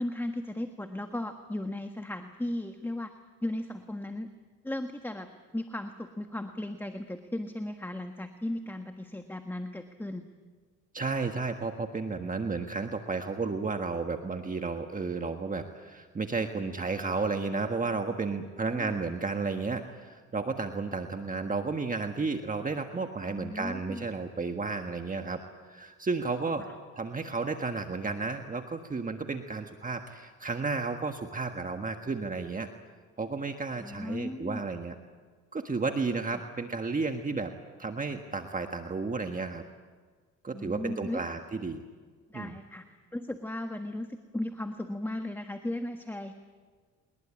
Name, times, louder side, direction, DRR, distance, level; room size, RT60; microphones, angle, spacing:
voice 1, 0.0-3.1 3.4-4.3 4.6-10.3 18.7-18.9 23.3-24.0 26.6-26.7 33.8-34.6 36.3-36.4 40.5-41.2 42.3-42.8 43.1-46.3, left 1 dB, 5° left, 6 dB, 1.5 m, -36 dB
voice 2, 10.9-25.4 25.7-26.7 26.9-32.7 33.2-34.9 35.5-37.5 37.8-39.6 40.4-41.8 42.3-42.6, right 4 dB, 25° right, 5 dB, 1.6 m, -32 dB
24.5 x 21.5 x 8.7 m, 1.5 s
cardioid pair, 90°, 30 cm